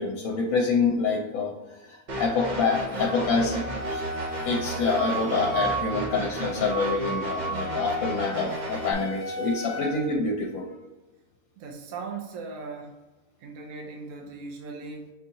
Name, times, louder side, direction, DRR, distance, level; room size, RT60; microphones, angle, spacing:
voice 1, 0.0-4.0 4.4-10.7, left 4 dB, 70° left, 0 dB, 1.1 m, -26 dB
sound 1, 2.1-8.9, right 1 dB, 45° right, 0.6 m, -34 dB
Wind instrument woodwind instrument, 3.1-9.9, right 1 dB, 25° left, 0.4 m, -35 dB
voice 2, 11.6-13.0 13.4-15.1, right 4 dB, 75° right, 1 dB, 1.1 m, -38 dB
6.0 x 2.8 x 2.6 m, 1.1 s
omnidirectional pair, 1.5 m